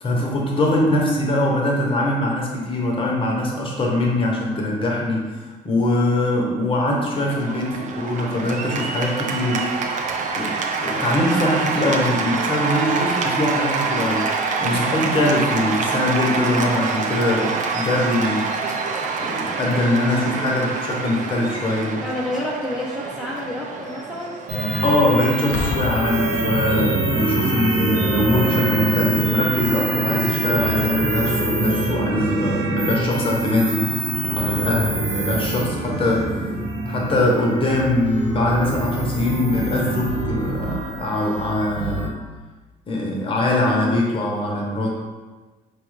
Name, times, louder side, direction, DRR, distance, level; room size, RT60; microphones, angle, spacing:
voice 1, 0.0-9.7 10.4-14.3 14.6-18.5 19.2-22.0 24.8-33.9 34.2-42.0 42.9-44.9, left 1 dB, 30° left, -1 dB, 0.8 m, -22 dB
Cheering / Applause, 7.1-26.4, right 4 dB, 45° right, 0.4 m, -26 dB
voice 2, 22.0-24.4, left 1 dB, 5° right, -6 dB, 0.6 m, -29 dB
sound 1, 24.5-42.1, right 2 dB, 75° right, 0.9 m, -24 dB
Boom, 25.5-27.3 28.1-28.4, left 5 dB, 65° left, 0.4 m, -29 dB
4.6 x 2.3 x 3.1 m, 1.3 s
cardioid pair, 110°, 17 cm